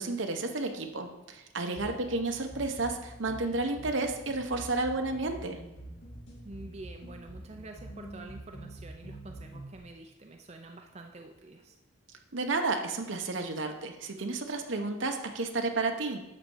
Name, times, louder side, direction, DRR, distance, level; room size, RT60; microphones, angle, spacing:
voice 1, 0.0-5.6 12.3-16.2, right 3 dB, 75° right, 5 dB, 1.1 m, -32 dB
sound 1, 1.8-9.8, right 1 dB, 65° left, 2.5 m, -46 dB
voice 2, 6.4-11.7, right 2 dB, 35° right, 3 dB, 0.6 m, -47 dB
11.0 x 4.3 x 7.2 m, 1.0 s
head